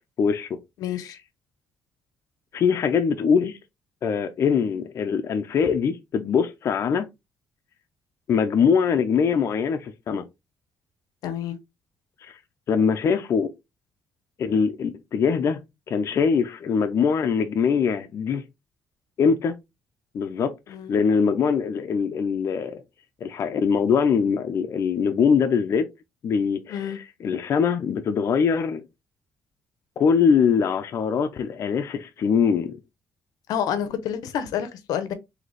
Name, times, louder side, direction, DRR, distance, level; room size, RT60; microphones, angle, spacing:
voice 1, 0.2-0.5 1.0-1.1 2.5-3.6 4.0-7.1 8.3-10.2 12.2-12.4 12.7-13.5 14.4-15.6 15.9-18.4 19.2-19.5 20.1-22.8 23.2-25.9 26.2-28.8 30.0-32.8, left 6 dB, 45° left, 0.5 m, -22 dB
voice 2, 0.8-1.2 11.2-11.6 20.7-20.9 26.7-27.0 33.5-35.1, left 9 dB, 85° left, 0.7 m, -28 dB
4.0 x 2.8 x 3.1 m
cardioid pair, 145°, 6 cm